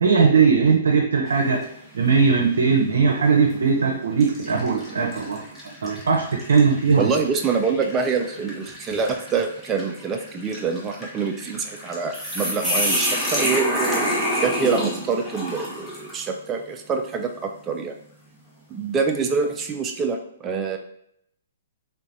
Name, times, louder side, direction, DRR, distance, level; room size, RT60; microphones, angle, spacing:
voice 1, 0.0-1.7 1.9-7.0, right 5 dB, 80° right, 0 dB, 0.6 m, -19 dB
sound 1, 1.3-1.7 2.3-2.4 3.3-3.6 4.2-16.2, equal, 10° left, 1.0 m, -29 dB
voice 2, 7.0-14.0 14.4-18.0 18.7-20.8, right 5 dB, 20° right, 3 dB, 0.3 m, -25 dB
3.5 x 3.1 x 2.6 m, 0.73 s
hypercardioid pair, 140°, 0 cm